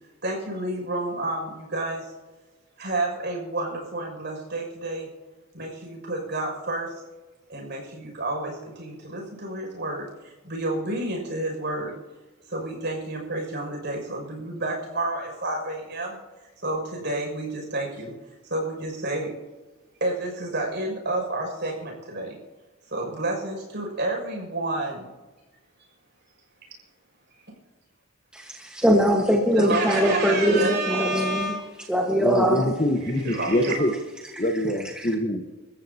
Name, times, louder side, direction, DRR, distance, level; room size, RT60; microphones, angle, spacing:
voice 1, 0.2-2.1 2.8-5.1 5.5-7.0 7.5-11.9 12.5-16.2 16.6-18.1 18.4-19.3 20.0-22.4 22.9-25.1 29.5-31.8 33.0-33.9, right 2 dB, 55° right, 1 dB, 6.6 m, -30 dB
voice 2, 28.3-31.6 31.9-32.7 34.4-34.5 35.0-35.1, equal, 5° right, -1 dB, 1.5 m, -22 dB
voice 3, 32.2-33.9 34.4-35.4, left 1 dB, 30° left, 5 dB, 1.3 m, -24 dB
28.5 x 14.5 x 2.9 m, 1.2 s
head